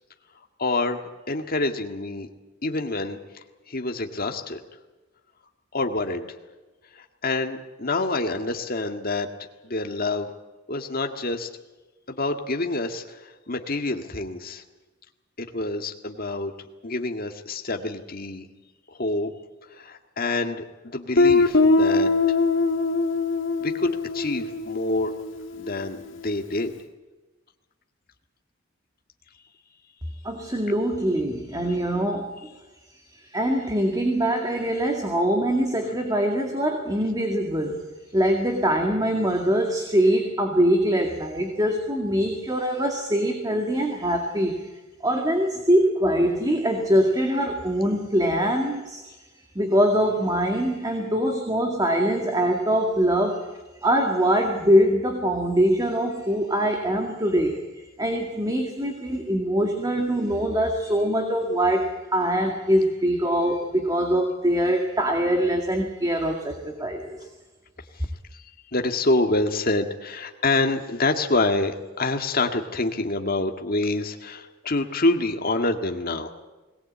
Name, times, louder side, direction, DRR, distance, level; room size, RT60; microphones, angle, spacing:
voice 1, 0.6-2.3 2.6-3.2 3.7-4.6 5.7-6.3 6.9-9.3 9.6-10.3 10.7-11.5 12.1-14.6 15.4-18.5 19.0-19.3 19.7-22.4 23.6-25.1 25.6-26.7 68.3-68.4 68.7-76.3, left 2 dB, 45° left, 4 dB, 1.9 m, -27 dB
Guitar, 21.2-25.8, left 3 dB, 65° left, 2.0 m, -22 dB
voice 2, 30.2-32.3 33.1-37.8 38.1-44.7 45.0-49.0 49.6-53.5 53.8-57.6 58.0-67.2, equal, 20° right, 3 dB, 2.0 m, -23 dB
21.0 x 18.5 x 8.6 m, 1.2 s
head